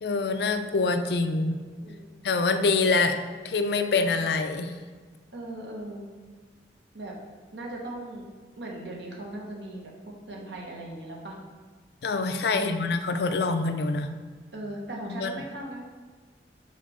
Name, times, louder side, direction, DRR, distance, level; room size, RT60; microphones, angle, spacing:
voice 1, 0.0-1.6 2.2-3.2 3.4-4.7 12.0-14.1 15.1-15.4, left 3 dB, 65° left, 8 dB, 0.4 m, -25 dB
voice 2, 5.3-6.1 6.9-7.1 7.5-8.2 8.6-11.3 12.5-12.9 14.5-15.8, right 1 dB, 80° right, -1 dB, 1.2 m, -38 dB
5.5 x 4.3 x 4.9 m, 1.4 s
head